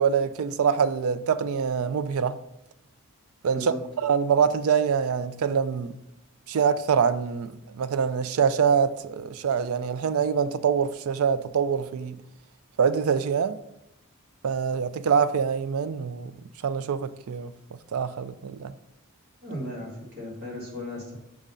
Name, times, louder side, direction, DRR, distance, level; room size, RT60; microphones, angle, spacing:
voice 1, 0.0-2.4 3.4-3.7 4.0-5.9 6.5-12.2 12.8-13.6 14.4-16.3 16.6-17.5 17.9-18.7, right 6 dB, 75° right, 0.4 m, -25 dB
voice 2, 19.4-21.2, left 1 dB, 50° right, 1.8 m, -36 dB
6.2 x 3.7 x 5.5 m
head